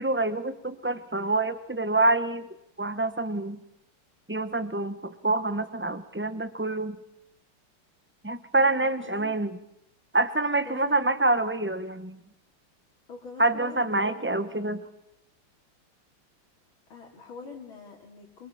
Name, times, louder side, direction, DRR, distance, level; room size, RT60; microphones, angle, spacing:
voice 1, 0.0-2.5 2.8-3.6 4.3-7.0 8.2-9.6 10.1-12.2 13.4-14.8, right 2 dB, 10° right, 12 dB, 0.5 m, -26 dB
voice 2, 8.6-9.6 10.6-11.2 13.1-14.6 16.9-18.5, left 4 dB, 70° left, -2 dB, 3.9 m, -44 dB
27.5 x 23.5 x 7.2 m, 0.79 s
omnidirectional pair, 2.4 m